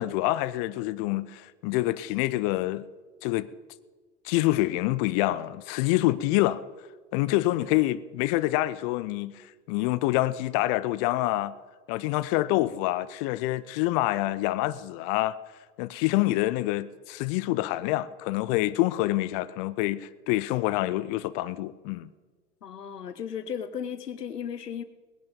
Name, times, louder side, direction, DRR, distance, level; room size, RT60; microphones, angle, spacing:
voice 1, 0.0-2.8 3.2-3.5 4.2-6.6 7.1-11.5 11.9-15.4 15.8-22.1, left 17 dB, 30° left, 0.3 m, -26 dB
voice 2, 22.6-24.8, left 8 dB, 90° left, 1.1 m, -35 dB
19.0 x 10.5 x 5.2 m
hypercardioid pair, 105°, 46 cm